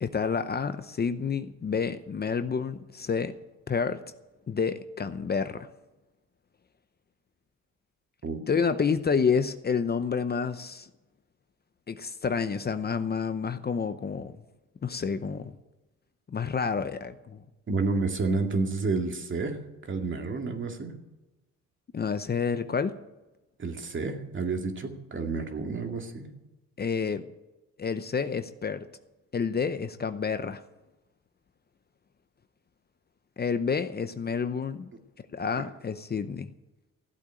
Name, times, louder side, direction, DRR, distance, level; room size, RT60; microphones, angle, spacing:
voice 1, 0.0-3.3 3.7-4.0 4.5-5.7 8.5-10.9 11.9-14.4 14.8-15.5 16.3-17.4 21.9-23.0 26.8-27.2 27.8-28.9 29.3-30.6 33.4-34.9 35.3-36.5, left 6 dB, 35° left, 10 dB, 0.8 m, -29 dB
voice 2, 17.7-20.9 23.6-26.3, right 3 dB, 40° right, 3 dB, 2.3 m, -30 dB
15.0 x 8.3 x 8.9 m, 1.0 s
cardioid pair, 90°, 30 cm